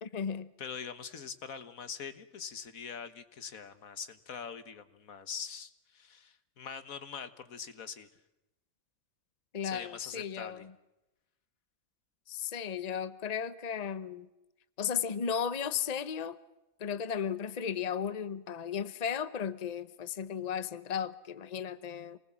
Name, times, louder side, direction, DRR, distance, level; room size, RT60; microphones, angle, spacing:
voice 1, 0.0-0.5 9.5-10.7 12.3-14.3 14.8-16.4 16.8-22.2, left 7 dB, 35° left, 14 dB, 0.9 m, -35 dB
voice 2, 0.6-8.1 9.6-10.7, left 6 dB, 85° left, 11 dB, 1.8 m, -43 dB
27.5 x 20.0 x 7.4 m, 0.97 s
omnidirectional pair, 1.4 m